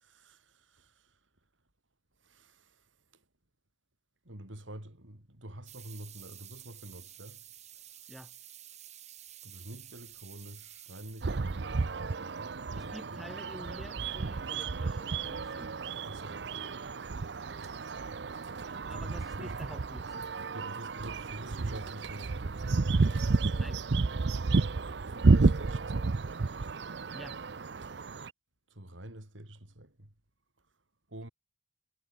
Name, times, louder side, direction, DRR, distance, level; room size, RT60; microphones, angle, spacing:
voice 1, 0.0-0.4 0.7-0.9 2.3-2.6 4.3-7.4 9.4-13.3 16.1-16.7 17.0-17.1 18.9-19.5 20.5-22.9 24.9-26.2 28.7-30.1 31.1-31.3, right 1 dB, 90° right, 4.4 m, -47 dB
sound 1, 5.7-11.5 14.3-14.4 14.6-14.7 15.2-15.3 15.5-15.6 16.0-16.2 17.6-17.9 18.4-18.5 19.2-19.7 20.2-20.3, right 12 dB, 35° right, 4.7 m, -51 dB
sound 2, 11.2-28.3, right 3 dB, 65° right, 0.6 m, -31 dB
voice 2, 12.7-15.7 18.9-20.3 23.6-23.8 27.1-27.4, equal, ahead, 3.1 m, -48 dB
head